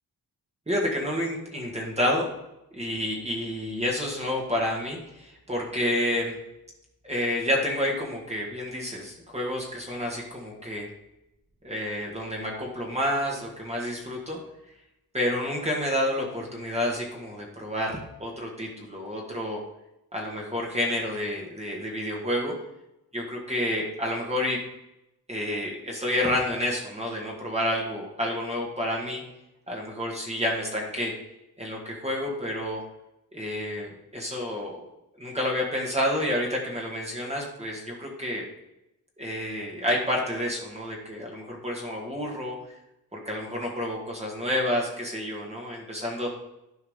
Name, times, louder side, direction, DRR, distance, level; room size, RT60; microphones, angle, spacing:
voice 1, 0.7-2.3 2.7-6.3 7.0-10.9 11.6-14.4 15.1-19.6 20.1-22.5 23.1-24.6 25.3-29.2 29.7-31.1 31.6-32.8 33.3-34.8 35.2-38.4 39.2-42.6 43.1-46.3, left 1 dB, 15° right, -2 dB, 1.7 m, -29 dB
12.0 x 4.7 x 3.6 m, 0.90 s
wide cardioid pair, 105°, 38 cm